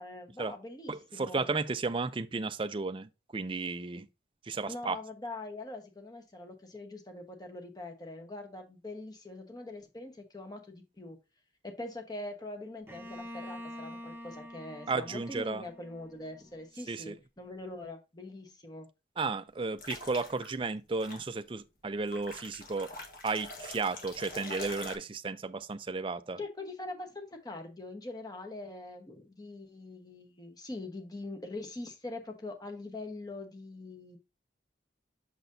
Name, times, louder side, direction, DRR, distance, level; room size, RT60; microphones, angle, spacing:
voice 1, 0.0-1.5 4.7-11.2 11.6-18.9 26.4-34.2, left 2 dB, 20° left, 1.1 m, -43 dB
voice 2, 0.9-4.1 4.5-5.0 14.9-15.6 16.9-17.1 19.2-22.9 23.2-26.4, right 3 dB, 25° right, 0.4 m, -34 dB
Bowed string instrument, 12.9-16.6, left 1 dB, 10° right, 0.9 m, -46 dB
sound 1, 19.8-20.5 21.0-21.2 22.1-24.9, left 2 dB, 45° left, 1.3 m, -44 dB
6.6 x 6.1 x 2.6 m
head